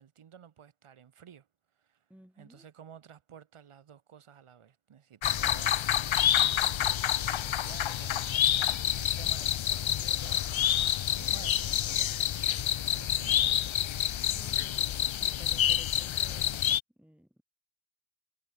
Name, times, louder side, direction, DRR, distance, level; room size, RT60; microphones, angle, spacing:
voice 1, 0.0-1.5 1.8-2.0 2.4-12.4 12.9-13.6, right 8 dB, 90° right, 2.4 m, -52 dB
voice 2, 2.1-2.7 14.3-16.7 17.0-17.4, equal, 5° right, 4.7 m, -55 dB
sound 1, 5.2-16.8, left 11 dB, 70° left, 0.8 m, -28 dB
wide cardioid pair, 110°, 49 cm